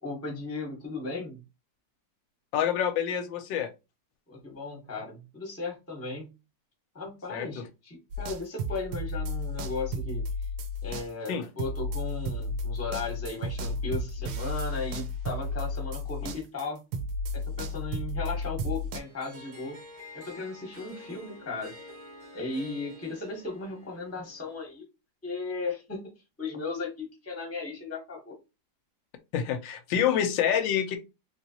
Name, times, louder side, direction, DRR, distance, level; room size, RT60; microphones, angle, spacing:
voice 1, 0.0-1.4 4.3-6.3 6.9-10.2 10.8-16.8 17.3-19.8 20.1-21.8 22.3-24.8 25.2-26.0 26.4-28.4, left 3 dB, 10° left, 0.8 m, -36 dB
voice 2, 2.5-3.7 7.3-7.7 11.3-11.5 29.3-31.0, left 9 dB, 85° left, 1.3 m, -27 dB
sound 1, 8.1-16.7 16.9-19.0, left 1 dB, 70° right, 1.0 m, -33 dB
Harp, 19.0-24.8, left 1 dB, 35° right, 0.6 m, -49 dB
3.2 x 3.0 x 2.7 m
omnidirectional pair, 2.0 m